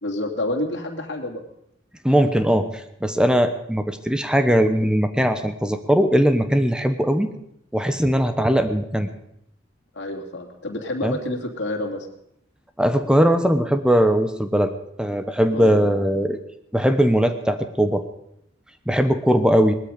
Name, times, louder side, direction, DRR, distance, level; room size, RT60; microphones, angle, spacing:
voice 1, 0.0-1.4 9.9-12.1 15.5-15.9, left 1 dB, 60° left, 1 dB, 2.8 m, -28 dB
voice 2, 2.0-7.3 7.7-9.1 11.0-11.2 12.8-14.7 15.0-16.4 16.7-18.0 18.9-19.7, equal, 5° right, 9 dB, 1.0 m, -20 dB
19.5 x 13.0 x 5.3 m, 0.75 s
head